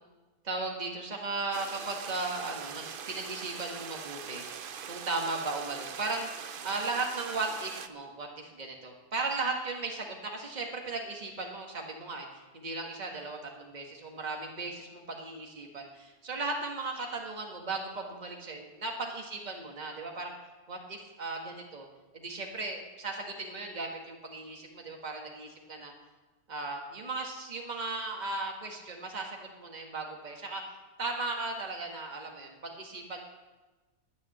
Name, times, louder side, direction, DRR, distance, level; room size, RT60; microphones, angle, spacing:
voice 1, 0.4-6.3 6.6-20.3 20.7-21.9 22.1-25.9 26.5-30.7 31.0-33.2, right 3 dB, 30° right, 1 dB, 1.8 m, -36 dB
sound 1, 1.5-7.9, right 7 dB, 50° right, 0.7 m, -42 dB
10.0 x 9.7 x 9.6 m, 1.2 s
omnidirectional pair, 1.5 m